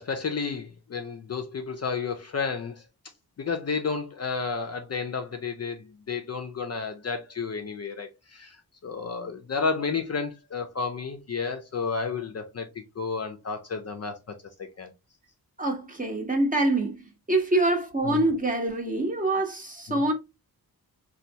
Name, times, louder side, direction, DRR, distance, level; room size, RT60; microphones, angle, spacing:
voice 1, 0.0-2.8 3.4-8.6 8.8-14.2 14.8-14.9 18.0-18.2 19.9-20.0, left 5 dB, 40° left, 0.4 m, -31 dB
voice 2, 15.6-20.1, right 2 dB, 20° right, 0.7 m, -25 dB
4.2 x 2.2 x 2.6 m
wide cardioid pair, 150°, 38 cm